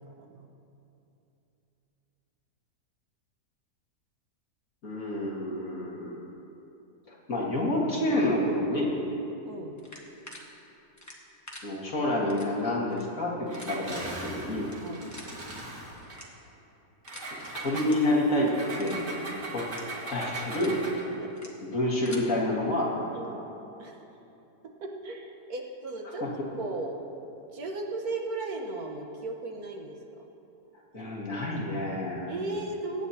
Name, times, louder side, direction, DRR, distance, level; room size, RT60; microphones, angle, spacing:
voice 1, 0.2-0.5 9.4-9.8 14.8-15.1 18.9-19.1 21.2-21.3 23.1-23.4 23.8-24.1 24.8-26.3 26.6-27.0 27.5-30.2 30.9-31.0 32.3-33.1, right 2 dB, 65° right, 1 dB, 1.6 m, -36 dB
voice 2, 4.8-6.2 7.1-8.9 11.6-14.7 17.3-19.3 19.5-19.7 20.0-20.8 21.6-23.1 30.9-32.3, left 1 dB, 55° left, -4 dB, 2.1 m, -28 dB
sound 1, 9.8-10.4 11.0-11.6 12.3-12.5 12.9-13.0 13.5-13.7 14.6-14.7 15.1-15.3 16.1-16.5 17.1-17.3 17.8-17.9 18.3-18.4 18.8-19.0 19.6-19.8 20.3-20.7 21.3-21.5 21.9-22.2, left 1 dB, 10° left, 1.1 m, -46 dB
Engine, 13.5-16.2 17.0-21.1, right 2 dB, 90° right, 2.5 m, -39 dB
22.5 x 9.2 x 2.8 m, 2.9 s
omnidirectional pair, 1.7 m